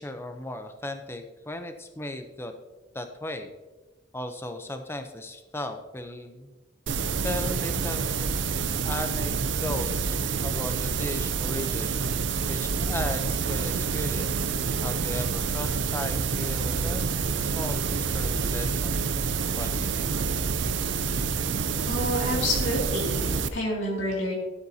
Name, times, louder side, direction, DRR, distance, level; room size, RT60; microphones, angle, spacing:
voice 1, 0.0-2.5 2.9-3.5 4.1-6.6 7.2-8.1 8.8-10.2 10.4-12.0 12.5-14.5 14.8-19.1 19.6-20.2, left 1 dB, 10° left, 7 dB, 0.6 m, -36 dB
sound 1, 6.9-23.5, right 5 dB, 75° right, 0.5 m, -28 dB
voice 2, 21.8-24.3, left 1 dB, 85° left, -2 dB, 2.3 m, -28 dB
12.5 x 8.0 x 2.8 m, 1.2 s
head